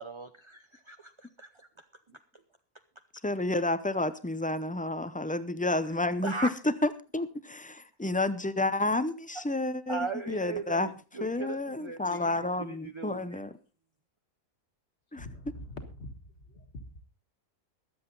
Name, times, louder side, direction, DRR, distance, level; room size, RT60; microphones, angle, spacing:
voice 1, 0.0-1.8 2.3-2.4 6.2-6.5 9.3-9.4 9.9-13.4, right 4 dB, 30° right, 8 dB, 0.6 m, -39 dB
voice 2, 3.2-6.3 6.6-10.9 11.2-13.5 15.1-15.3, left 2 dB, 10° left, 13 dB, 0.4 m, -30 dB
voice 3, 15.1-16.1 16.4-17.0, left 1 dB, 55° left, 6 dB, 2.1 m, -44 dB
22.5 x 8.0 x 3.9 m, 0.35 s
omnidirectional pair, 1.4 m